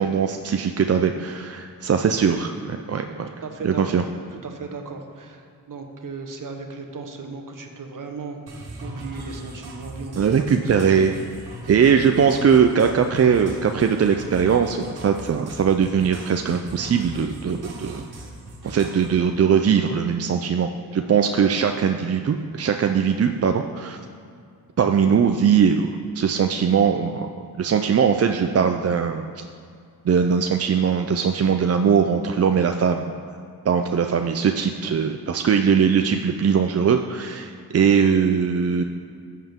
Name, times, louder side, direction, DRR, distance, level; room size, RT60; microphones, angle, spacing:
voice 1, 0.0-3.3 3.6-4.0 10.2-11.1 11.7-18.0 18.6-24.0 24.8-27.3 27.6-29.2 30.0-33.1 33.7-38.8, right 7 dB, 40° right, 5 dB, 0.5 m, -20 dB
voice 2, 3.4-4.1 4.4-10.5 10.7-10.8 11.8-13.0, right 4 dB, 55° right, 4 dB, 1.2 m, -36 dB
sound 1, 8.5-19.1, right 1 dB, 85° right, 1.8 m, -39 dB
13.5 x 7.5 x 3.6 m, 2.2 s
wide cardioid pair, 85°, 37 cm